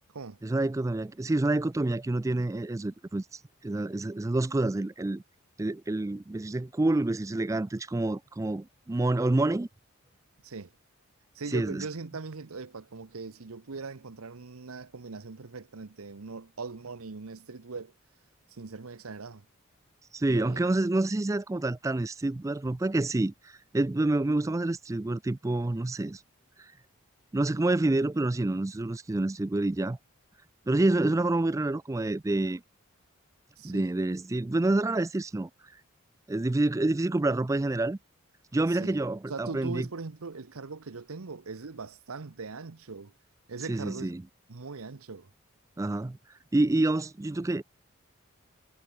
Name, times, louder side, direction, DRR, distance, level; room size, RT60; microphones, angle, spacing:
voice 1, 0.4-5.2 5.6-9.7 11.5-11.8 20.1-26.2 27.3-30.0 30.7-32.6 33.6-35.5 36.3-38.0 38.5-39.9 43.7-44.2 45.8-46.2 46.5-47.6, right 2 dB, 15° right, 0.3 m, -28 dB
voice 2, 11.3-17.9 18.5-19.5 20.3-20.7 33.6-33.9 38.7-39.0 39.3-43.1 43.5-44.1 44.5-45.3, right 4 dB, 85° right, 0.9 m, -40 dB
head